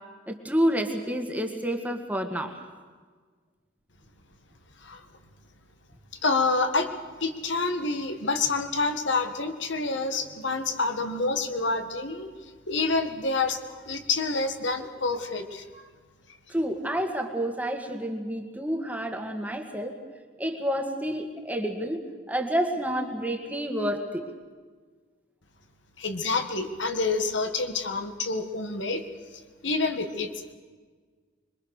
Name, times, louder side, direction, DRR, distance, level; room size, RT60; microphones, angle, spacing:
voice 1, 0.3-2.6 16.5-20.0 20.4-24.3, equal, 10° right, 3 dB, 2.0 m, -29 dB
voice 2, 6.2-6.9 7.2-15.8 26.0-29.0 29.3-30.5, left 3 dB, 70° left, 6 dB, 1.8 m, -28 dB
26.0 x 22.5 x 6.7 m, 1.5 s
head